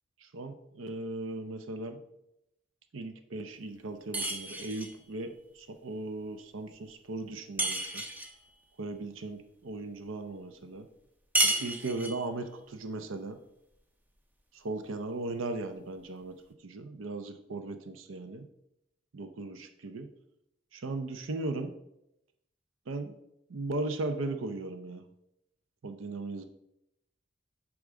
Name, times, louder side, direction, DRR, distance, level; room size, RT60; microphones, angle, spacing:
voice 1, 0.2-2.0 2.9-8.0 8.8-10.9 11.4-13.4 14.5-16.4 16.6-18.5 19.1-20.1 20.7-21.7 22.9-23.2 23.5-25.0 25.8-26.4, right 2 dB, 85° right, 8 dB, 0.6 m, -37 dB
sound 1, 4.1-5.0 7.6-8.4 11.3-12.3, right 2 dB, 10° right, 0.6 m, -31 dB
8.2 x 5.0 x 3.7 m, 0.83 s
head